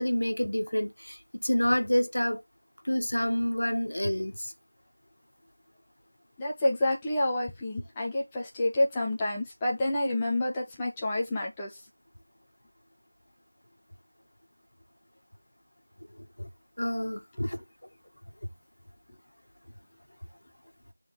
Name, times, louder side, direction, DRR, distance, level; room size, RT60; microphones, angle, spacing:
voice 1, 0.0-2.4 2.8-4.5 16.4-16.5 16.8-17.6, equal, 65° left, 1.5 m, -28 dB
voice 2, 6.4-11.7, left 1 dB, 5° left, 0.5 m, -28 dB
8.4 x 3.7 x 3.4 m
figure-of-eight pair, 180°, 0 cm